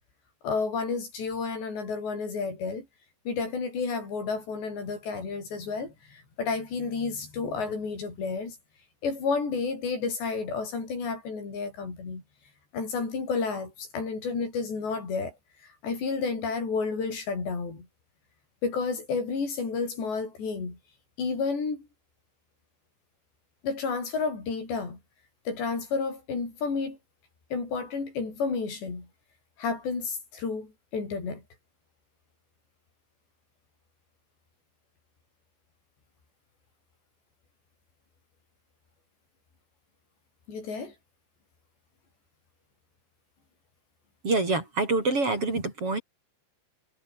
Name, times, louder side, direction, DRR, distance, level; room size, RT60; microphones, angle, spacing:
voice 1, 0.4-2.9 3.3-8.6 9.0-12.2 12.7-15.4 15.6-17.9 18.6-20.8 21.2-21.9 23.6-25.0 25.5-27.0 27.5-29.1 29.6-31.4 40.5-40.9, left 4 dB, 80° left, 9.8 m, -31 dB
voice 2, 44.2-46.0, right 3 dB, 35° right, 5.0 m, -26 dB
omnidirectional pair, 4.9 m